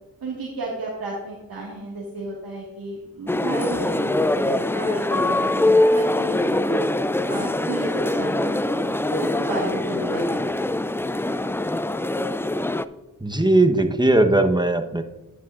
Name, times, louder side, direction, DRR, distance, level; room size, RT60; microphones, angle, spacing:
voice 1, 0.2-6.8 7.3-10.5, right 2 dB, 90° right, -5 dB, 1.9 m, -33 dB
sound 1, 3.3-12.8, left 2 dB, 5° left, 0.3 m, -23 dB
voice 2, 13.2-15.0, right 2 dB, 10° right, 6 dB, 1.0 m, -18 dB
10.5 x 9.5 x 2.5 m, 1.0 s
cardioid pair, 55°, 35 cm